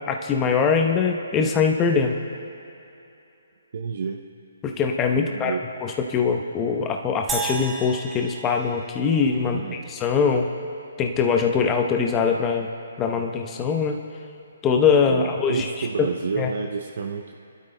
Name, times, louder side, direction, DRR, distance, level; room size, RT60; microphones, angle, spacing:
voice 1, 0.1-2.2 4.6-5.5 5.8-9.6 9.9-10.5 11.0-12.7 13.0-14.0 14.6-15.7 16.0-16.1 16.4-16.5, left 5 dB, 20° left, 3 dB, 0.8 m, -22 dB
voice 2, 3.7-4.2 5.1-5.7 9.4-9.9 15.1-17.3, right 5 dB, 60° right, 2 dB, 0.7 m, -30 dB
sound 1, 7.3-9.7, right 3 dB, 10° right, 1.1 m, -33 dB
26.5 x 12.0 x 2.2 m, 2.8 s
hypercardioid pair, 145°, 0 cm